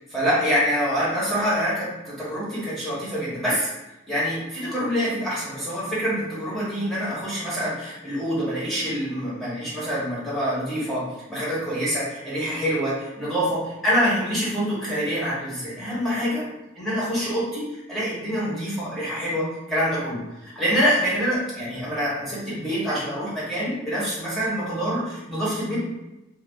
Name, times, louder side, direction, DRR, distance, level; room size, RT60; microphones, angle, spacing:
voice 1, 0.1-3.7 4.1-16.4 16.8-25.8, equal, ahead, -9 dB, 1.0 m, -26 dB
2.6 x 2.3 x 3.4 m, 0.98 s
head